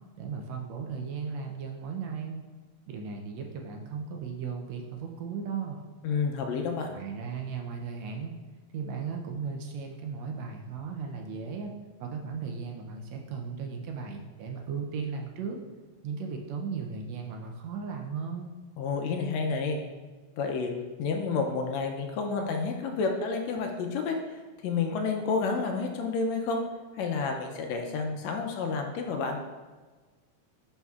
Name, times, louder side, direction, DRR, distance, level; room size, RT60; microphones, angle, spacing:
voice 1, 0.2-2.4 2.9-5.8 6.9-8.3 8.7-11.7 12.0-15.6 16.0-18.5, right 5 dB, 75° right, 2 dB, 1.7 m, -36 dB
voice 2, 6.0-6.9 18.8-19.8 20.4-20.7 21.0-26.6 26.9-29.4, left 4 dB, 75° left, 3 dB, 1.7 m, -30 dB
10.5 x 4.1 x 2.4 m, 1.3 s
omnidirectional pair, 3.3 m